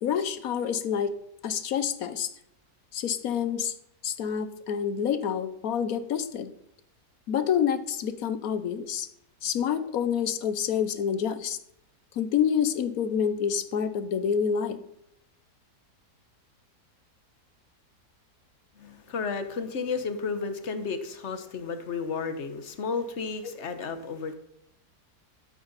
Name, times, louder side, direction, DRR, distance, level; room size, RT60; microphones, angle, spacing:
voice 1, 0.0-1.1 1.4-2.3 2.9-3.7 4.0-6.5 7.3-9.1 9.4-11.6 12.1-14.8, left 8 dB, 65° left, 12 dB, 1.2 m, -27 dB
voice 2, 18.8-24.4, left 5 dB, 50° left, 9 dB, 1.2 m, -32 dB
12.5 x 7.9 x 4.1 m, 0.76 s
omnidirectional pair, 1.7 m